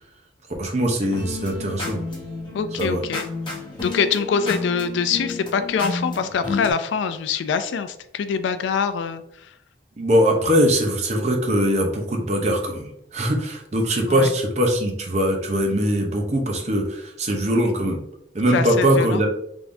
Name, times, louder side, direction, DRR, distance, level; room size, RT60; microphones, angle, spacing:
voice 1, 0.6-2.0 2.8-3.0 10.0-18.0 18.3-19.3, equal, 35° right, 2 dB, 0.6 m, -21 dB
sound 1, 1.0-6.7, left 3 dB, 25° left, 1.0 m, -31 dB
voice 2, 2.5-3.3 3.8-9.5 14.1-14.3 18.5-19.2, left 6 dB, 75° left, 11 dB, 0.3 m, -24 dB
3.5 x 3.4 x 2.6 m, 0.77 s
head